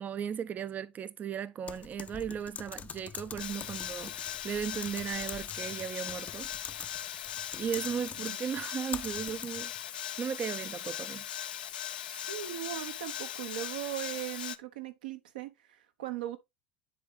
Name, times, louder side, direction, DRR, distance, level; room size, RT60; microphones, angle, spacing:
voice 1, 0.0-6.5 7.5-9.7 10.2-11.3, right 8 dB, 35° right, 0.4 m, -36 dB
Typing, 1.7-9.8, left 7 dB, 30° left, 0.5 m, -45 dB
sound 1, 3.4-14.6, left 11 dB, 85° left, 0.4 m, -39 dB
voice 2, 12.1-16.4, right 12 dB, 80° right, 0.9 m, -39 dB
10.0 x 3.8 x 3.2 m
hypercardioid pair, 80°, 5 cm